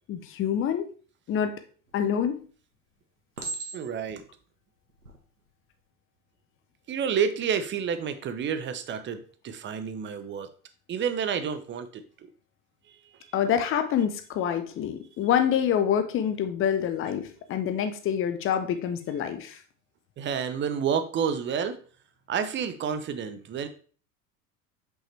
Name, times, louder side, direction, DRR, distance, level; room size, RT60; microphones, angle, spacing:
voice 1, 0.1-0.9 1.3-1.5 1.9-2.4 13.3-19.6, left 8 dB, 30° left, 8 dB, 0.8 m, -26 dB
Chink clink, 1.9-2.4 3.4-4.2 4.9-5.2, right 3 dB, 90° right, 1.3 m, -37 dB
voice 2, 3.7-4.2 6.9-10.5 10.9-12.3 12.9-13.3 20.2-21.8 22.3-23.7, right 7 dB, 25° right, 10 dB, 0.7 m, -30 dB
5.7 x 5.5 x 3.3 m, 0.41 s
figure-of-eight pair, 80°, 45 cm